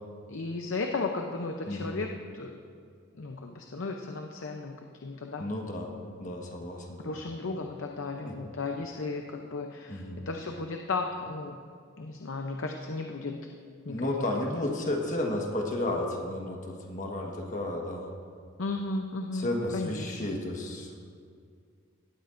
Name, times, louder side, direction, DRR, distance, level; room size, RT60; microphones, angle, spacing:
voice 1, 0.3-2.1 2.3-2.6 3.2-5.4 7.0-11.6 12.0-13.5 13.9-14.1 18.6-19.5 19.7-20.3, left 3 dB, 65° left, 3 dB, 0.6 m, -35 dB
voice 2, 1.7-2.0 5.4-5.9 6.2-7.2 8.2-8.4 9.9-10.2 13.9-18.1 19.3-21.0, left 1 dB, 35° left, 1 dB, 1.4 m, -32 dB
17.5 x 12.5 x 2.6 m, 2.2 s
head